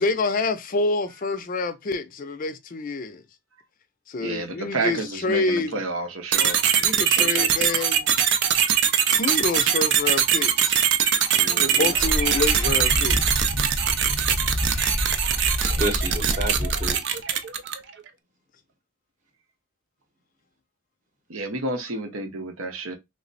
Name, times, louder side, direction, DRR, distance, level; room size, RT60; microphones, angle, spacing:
voice 1, 0.0-3.2 4.1-5.8 6.8-8.1 9.1-10.7 11.6-13.4, left 3 dB, 40° left, 0.4 m, -27 dB
voice 2, 4.2-6.6 7.2-7.5 15.6-15.7 21.3-23.0, right 2 dB, 85° right, 0.8 m, -30 dB
sound 1, 6.3-17.9, right 8 dB, 55° right, 0.4 m, -22 dB
voice 3, 11.4-11.9 15.6-17.2, right 2 dB, 40° right, 0.9 m, -31 dB
Wind / Subway metro underground, 11.9-16.9, left 1 dB, 5° right, 0.8 m, -28 dB
3.2 x 2.0 x 4.0 m
head